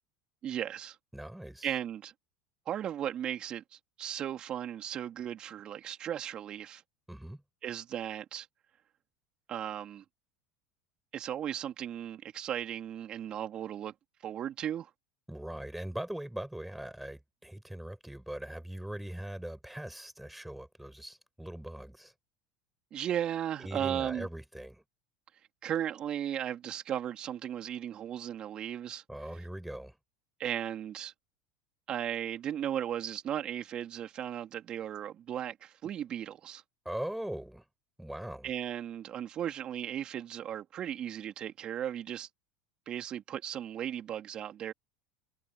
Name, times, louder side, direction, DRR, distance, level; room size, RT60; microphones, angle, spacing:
voice 1, 0.4-1.0 1.6-2.1 2.7-6.8 7.6-8.5 9.5-10.0 11.1-13.9 14.2-14.9 22.9-24.3 25.6-29.0 30.4-31.1 31.9-36.6 38.4-42.3 42.9-44.7, right 10 dB, 40° right, 3.2 m, -36 dB
voice 2, 1.1-1.7 7.1-7.4 15.3-22.1 23.6-24.8 29.1-30.0 36.8-37.6 38.0-38.5, right 1 dB, 5° right, 6.0 m, -41 dB
hypercardioid pair, 90°, 2 cm